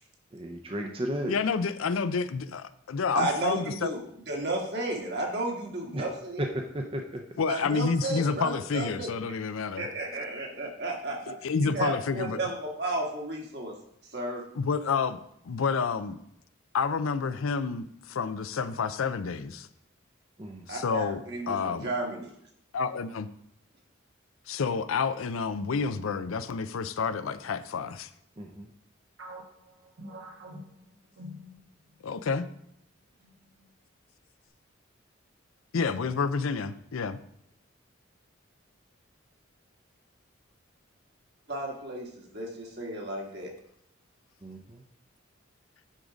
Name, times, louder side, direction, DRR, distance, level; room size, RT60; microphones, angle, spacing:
voice 1, 0.3-1.3 5.9-6.0 6.4-6.5 6.7-7.2 20.4-20.6 28.4-28.7 44.4-44.8, right 1 dB, 25° right, 3 dB, 0.6 m, -34 dB
voice 2, 1.3-3.9 7.4-9.9 11.3-12.4 14.5-15.2 15.4-16.2 16.7-19.7 20.7-21.9 22.7-23.3 24.5-28.1 32.0-32.5 35.7-37.2, left 5 dB, 90° left, 13 dB, 0.5 m, -29 dB
voice 3, 3.1-4.0 4.3-6.5 7.5-9.1 9.8-11.3 11.6-13.7 14.1-14.4 20.7-22.3 41.5-43.5, right 2 dB, 55° right, 0 dB, 1.6 m, -33 dB
sound 1, 29.2-32.0 32.4-32.6 33.2-33.7, equal, 75° right, 1.2 m, -46 dB
10.0 x 3.9 x 5.0 m, 0.73 s
head